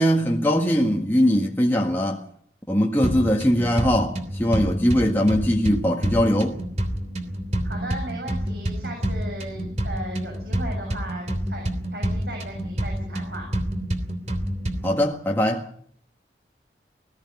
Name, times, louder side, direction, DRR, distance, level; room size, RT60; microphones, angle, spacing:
voice 1, 0.0-2.2 2.7-6.6 14.8-15.7, equal, 10° left, 1.7 m, -21 dB
sound 1, 3.0-15.0, equal, 40° right, 3.1 m, -28 dB
voice 2, 7.6-13.5, right 1 dB, 65° right, 7.1 m, -36 dB
20.0 x 15.0 x 9.7 m
head